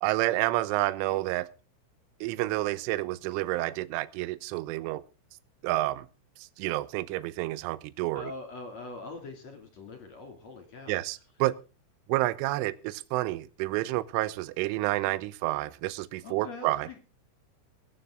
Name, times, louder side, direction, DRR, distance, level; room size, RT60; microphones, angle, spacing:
voice 1, 0.0-1.5 2.2-5.0 5.6-6.1 6.6-8.3 10.9-11.5 12.1-16.9, right 17 dB, 80° right, 3.2 m, -29 dB
voice 2, 8.1-11.0 16.2-17.0, left 3 dB, 40° left, 3.2 m, -43 dB
21.5 x 10.0 x 3.8 m
omnidirectional pair, 6.0 m